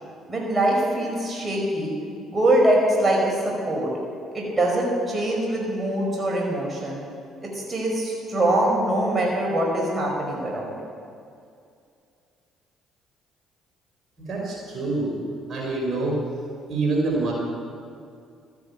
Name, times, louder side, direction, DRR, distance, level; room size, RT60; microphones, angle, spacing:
voice 1, 0.3-1.9 2.3-3.4 3.6-3.9 4.3-7.0 7.4-10.7, right 1 dB, 25° right, -2 dB, 5.1 m, -23 dB
voice 2, 14.2-15.2 15.5-16.2 16.7-17.3, right 3 dB, 50° right, -2 dB, 5.0 m, -26 dB
13.5 x 10.5 x 8.5 m, 2.4 s
supercardioid pair, 60°, 0 cm